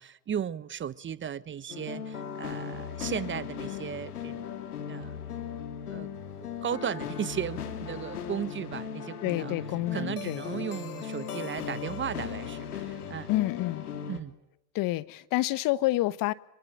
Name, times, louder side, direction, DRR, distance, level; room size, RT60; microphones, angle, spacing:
voice 1, 0.0-4.5 4.9-5.2 5.9-6.1 6.3-9.5 9.9-13.3 14.1-14.3, right 8 dB, 25° right, 1.0 m, -36 dB
sound 1, 1.7-14.2, left 7 dB, 85° left, 2.9 m, -37 dB
voice 2, 9.2-10.7 13.3-13.9 14.7-16.3, left 17 dB, 50° left, 1.1 m, -28 dB
26.0 x 23.0 x 9.9 m
hypercardioid pair, 80°, 44 cm